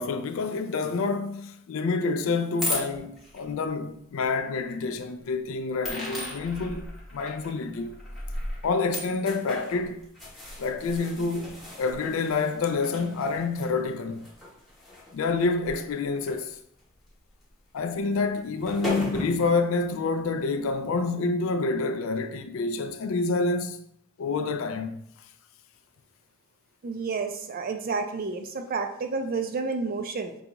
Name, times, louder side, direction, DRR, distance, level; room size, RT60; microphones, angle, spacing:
voice 1, 0.0-6.9 7.1-8.0 8.6-10.0 10.6-14.3 15.1-16.6 17.7-23.8 24.2-25.0, left 4 dB, 65° left, 0.3 m, -28 dB
sound 1, 2.6-3.4 4.3-4.4 5.8-16.3 16.8-17.0 18.3-18.4 18.6-19.6, left 1 dB, ahead, 0.9 m, -36 dB
voice 2, 26.8-30.4, right 4 dB, 45° right, 0.4 m, -30 dB
5.2 x 2.3 x 2.9 m
head